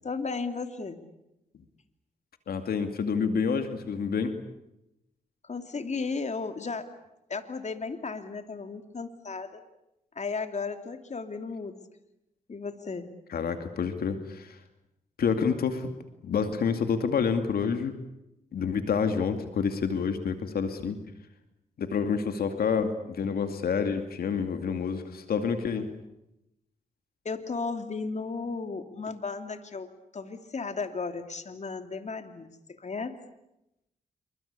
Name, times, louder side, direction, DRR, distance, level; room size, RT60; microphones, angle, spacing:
voice 1, 0.0-1.0 5.4-6.9 7.3-9.6 10.1-11.8 12.5-13.1 27.2-33.2, left 4 dB, 50° left, 8 dB, 2.9 m, -35 dB
voice 2, 2.5-4.4 13.3-14.6 15.2-15.9 16.2-17.9 18.5-21.0 21.8-25.9, left 6 dB, 80° left, 7 dB, 2.4 m, -28 dB
27.0 x 24.0 x 8.5 m, 0.87 s
cardioid pair, 60°, 16 cm